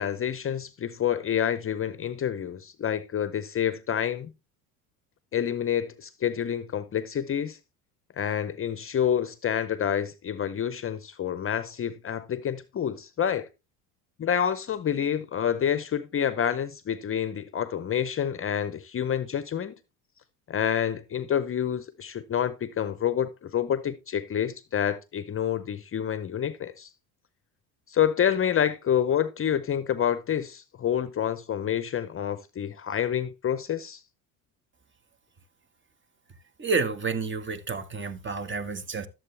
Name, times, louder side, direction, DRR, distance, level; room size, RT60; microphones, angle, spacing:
voice 1, 0.0-4.3 5.3-7.6 8.2-13.5 14.2-19.7 20.5-26.9 27.9-34.0, left 9 dB, 30° left, 0.8 m, -28 dB
voice 2, 36.6-39.1, right 4 dB, 25° right, 1.7 m, -30 dB
12.5 x 7.7 x 3.3 m
hypercardioid pair, 85°, 44 cm